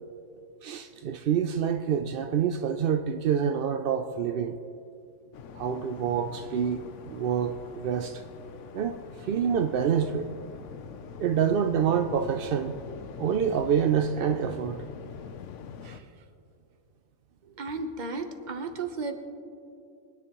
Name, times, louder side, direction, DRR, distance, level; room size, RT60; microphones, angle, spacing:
voice 1, 0.6-4.6 5.6-6.8 7.1-8.2 8.7-10.3 11.2-12.7 13.2-14.8 15.8-16.0, right 8 dB, 70° right, 0.5 m, -27 dB
Waves surf, 5.3-16.0, left 7 dB, 65° left, 0.9 m, -44 dB
voice 2, 17.6-19.1, right 3 dB, 40° right, 0.9 m, -34 dB
23.0 x 9.7 x 3.0 m
omnidirectional pair, 1.5 m